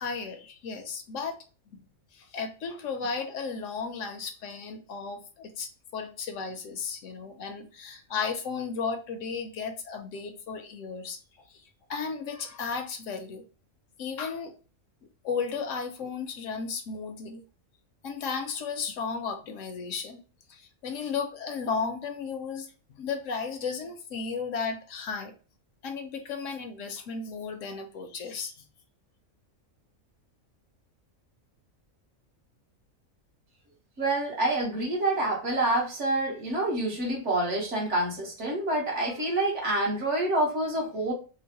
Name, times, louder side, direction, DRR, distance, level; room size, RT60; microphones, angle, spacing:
voice 1, 0.0-1.3 2.1-11.2 11.5-11.6 11.9-13.4 14.0-14.6 15.2-17.4 18.0-20.2 20.5-25.3 25.8-28.5, left 5 dB, 70° left, 5 dB, 0.9 m, -34 dB
voice 2, 34.0-41.1, right 1 dB, 60° right, -2 dB, 1.4 m, -27 dB
3.8 x 2.0 x 2.8 m, 0.36 s
omnidirectional pair, 1.4 m